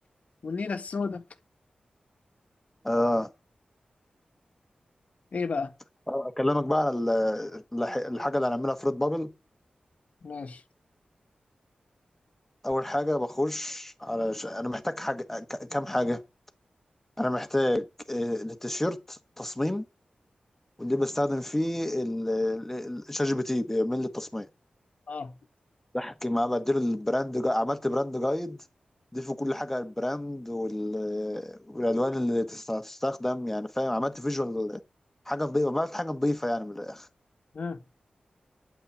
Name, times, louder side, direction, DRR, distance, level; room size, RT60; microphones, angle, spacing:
voice 1, 0.4-1.2 5.3-5.7 10.2-10.6 25.1-25.3 37.5-37.8, left 4 dB, 60° left, 1.3 m, -32 dB
voice 2, 2.8-3.3 6.1-9.3 12.6-16.2 17.2-19.8 20.8-24.5 25.9-28.6 29.1-34.8 35.3-37.1, left 1 dB, 10° left, 1.2 m, -29 dB
8.8 x 8.3 x 8.6 m
wide cardioid pair, 120°, 3 cm